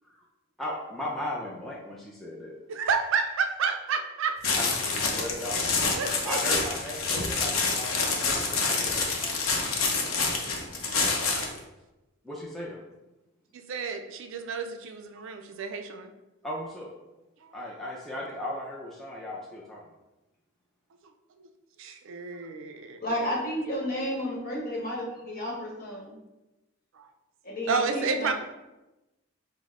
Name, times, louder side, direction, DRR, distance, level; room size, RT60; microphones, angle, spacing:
voice 1, 0.6-2.5 4.5-5.7 6.2-9.4 12.2-12.8 16.4-16.9 17.5-19.8, left 1 dB, ahead, -5 dB, 0.4 m, -37 dB
voice 2, 2.7-4.4 6.0-6.6 11.3-11.5 13.7-16.1 17.4-17.5 21.8-23.0 27.0-27.1 27.7-28.3, right 5 dB, 65° right, 6 dB, 0.4 m, -30 dB
sound 1, 4.4-11.6, left 4 dB, 75° left, 0.6 m, -27 dB
voice 3, 23.0-26.2 27.4-28.3, equal, 45° left, -4 dB, 1.1 m, -32 dB
5.2 x 2.0 x 3.6 m, 1.0 s
head